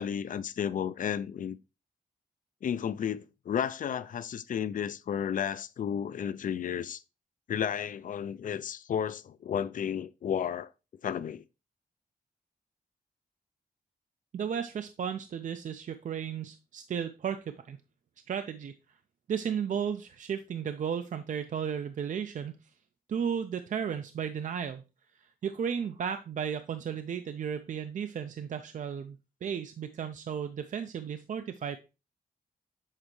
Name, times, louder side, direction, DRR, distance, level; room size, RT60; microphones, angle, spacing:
voice 1, 0.0-1.6 2.6-7.0 7.5-10.7 11.0-11.4, left 8 dB, 60° left, 0.4 m, -32 dB
voice 2, 14.3-17.8 18.3-18.7 19.3-22.6 23.1-24.8 25.4-31.8, right 7 dB, 55° right, 0.4 m, -34 dB
7.3 x 4.3 x 3.1 m
wide cardioid pair, 175°, 16 cm